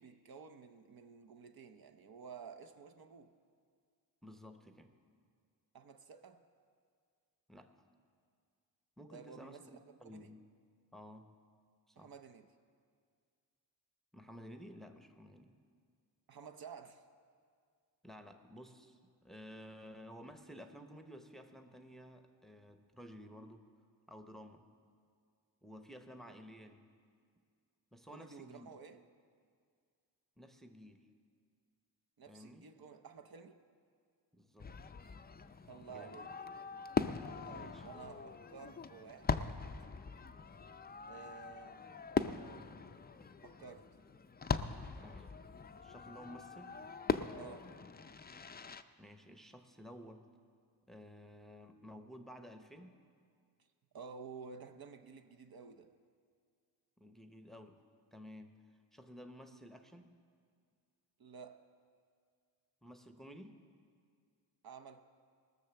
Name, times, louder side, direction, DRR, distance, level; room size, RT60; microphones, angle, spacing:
voice 1, 0.0-3.3 5.7-6.4 9.1-10.3 12.0-12.5 16.3-17.0 28.1-29.0 32.2-33.6 35.7-36.3 37.4-39.5 41.1-41.9 43.4-43.9 47.4-47.7 53.9-55.9 61.2-61.6 64.6-65.0, right 6 dB, 55° right, 0.8 m, -52 dB
voice 2, 4.2-4.9 7.5-7.7 9.0-10.4 10.9-11.3 11.9-12.1 14.1-15.6 18.0-23.6 24.1-24.6 25.6-26.9 27.9-28.7 30.4-31.1 32.3-32.7 34.3-34.7 35.9-36.2 37.5-38.0 38.6-38.7 45.0-45.4 45.8-46.8 49.0-50.2 50.9-53.0 57.0-57.8 58.1-58.5 58.9-60.2 62.8-63.6, equal, ahead, 0.8 m, -53 dB
Fireworks, 34.6-48.8, left 5 dB, 25° left, 0.4 m, -41 dB
19.0 x 6.6 x 6.9 m
cardioid pair, 80°, 42 cm